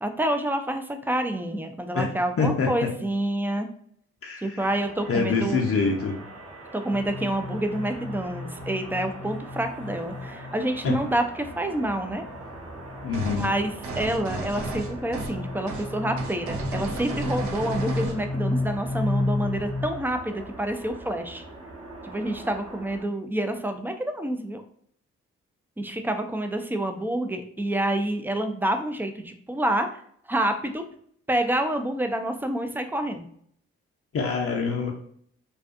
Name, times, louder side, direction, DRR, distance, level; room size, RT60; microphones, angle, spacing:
voice 1, 0.0-3.7 4.4-5.7 6.7-12.2 13.4-21.4 22.0-24.6 25.8-29.9 30.3-30.8 31.3-33.3, right 1 dB, 5° right, 6 dB, 0.4 m, -28 dB
voice 2, 2.4-2.9 4.2-4.6 5.1-6.2 10.8-11.0 13.0-13.5 34.1-34.9, left 4 dB, 45° left, -1 dB, 0.6 m, -25 dB
sound 1, 4.6-23.0, right 2 dB, 45° right, 1.1 m, -42 dB
sound 2, 6.9-10.8 12.2-19.8, left 2 dB, 25° right, 1.1 m, -33 dB
sound 3, 13.1-13.5 13.8-15.4 15.7-15.9 16.2-18.2, right 3 dB, 65° right, 0.6 m, -33 dB
2.4 x 2.3 x 2.4 m, 0.63 s
hypercardioid pair, 40°, 31 cm